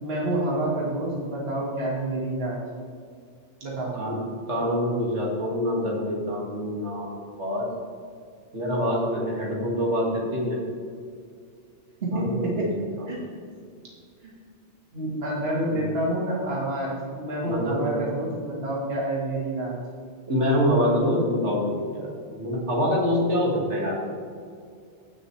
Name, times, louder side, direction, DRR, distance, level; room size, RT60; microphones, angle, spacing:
voice 1, 0.0-2.7 3.6-4.0 12.0-12.7 13.1-13.4 14.9-19.8, right 1 dB, 60° right, -4 dB, 1.8 m, -28 dB
voice 2, 4.5-7.1 7.4-7.7 8.5-10.6 12.1-12.7 13.0-13.1 15.6-15.9 17.5-17.9 20.3-24.1, equal, 80° right, -3 dB, 2.2 m, -25 dB
15.5 x 6.6 x 3.2 m, 2.2 s
omnidirectional pair, 1.2 m